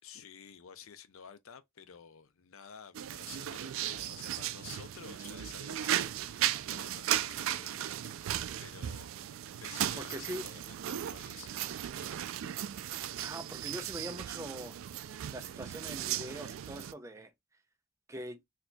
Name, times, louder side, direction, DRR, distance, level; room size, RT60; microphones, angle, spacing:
voice 1, 0.0-9.1 9.6-12.3, left 7 dB, 75° left, 0.5 m, -52 dB
sound 1, 2.9-16.9, right 11 dB, 70° right, 0.3 m, -36 dB
voice 2, 10.0-10.5 13.2-14.7 15.3-17.3 18.1-18.4, right 1 dB, 15° right, 0.5 m, -42 dB
4.2 x 2.7 x 2.2 m
head